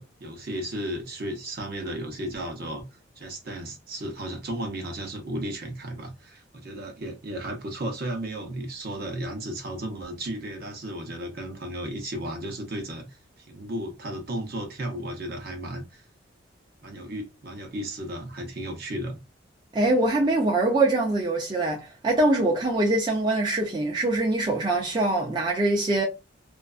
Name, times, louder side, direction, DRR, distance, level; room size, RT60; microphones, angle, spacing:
voice 1, 0.0-2.8 3.2-13.2 13.5-16.0 16.8-19.2, right 1 dB, 50° right, 0.8 m, -34 dB
voice 2, 19.7-26.0, right 2 dB, 25° right, 0.4 m, -23 dB
2.4 x 2.3 x 2.3 m
head